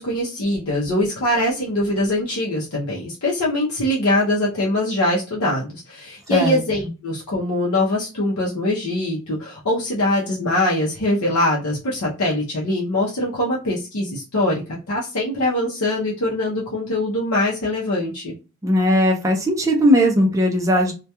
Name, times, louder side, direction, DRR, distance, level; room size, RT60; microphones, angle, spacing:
voice 1, 0.0-14.6 14.9-18.3, left 1 dB, 75° left, -4 dB, 0.6 m, -22 dB
voice 2, 6.3-6.6 18.6-20.9, equal, 15° right, 1 dB, 0.4 m, -18 dB
2.2 x 2.2 x 2.7 m, 0.31 s
head